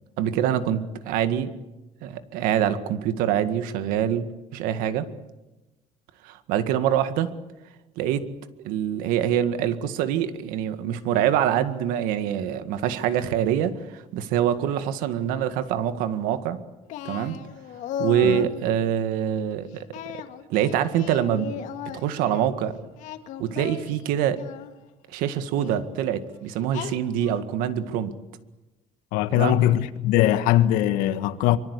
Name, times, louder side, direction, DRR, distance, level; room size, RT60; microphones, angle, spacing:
voice 1, 0.2-1.5 2.0-5.1 6.2-7.3 8.0-8.3 8.6-16.6 17.1-17.4 18.0-19.9 20.1-20.2 20.5-21.6 21.9-22.8 23.4-24.4 25.1-28.1 29.3-29.6, right 10 dB, 85° right, 2.0 m, -25 dB
Singing, 16.9-18.6 19.9-22.5 22.9-24.7 25.5-25.8 26.7-27.4, left 10 dB, 65° left, 2.1 m, -36 dB
voice 2, 29.1-31.6, left 13 dB, 85° left, 1.6 m, -21 dB
25.0 x 24.0 x 8.3 m
cardioid pair, 160°, 14 cm